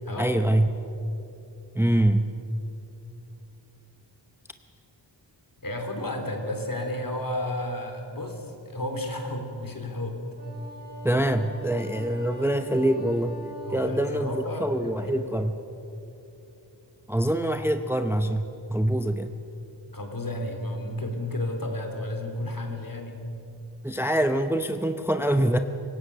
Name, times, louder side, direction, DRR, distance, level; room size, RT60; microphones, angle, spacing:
voice 1, 0.2-0.7 1.7-2.4 11.0-15.5 17.1-19.4 23.8-25.6, right 1 dB, 5° right, 8 dB, 0.7 m, -25 dB
voice 2, 5.6-10.2 13.6-15.4 19.9-23.2, left 1 dB, 50° left, 3 dB, 3.4 m, -32 dB
Wind instrument woodwind instrument, 10.3-14.6, right 1 dB, 20° right, 6.7 m, -43 dB
26.0 x 16.5 x 6.8 m, 2.9 s
wide cardioid pair, 75°, 44 cm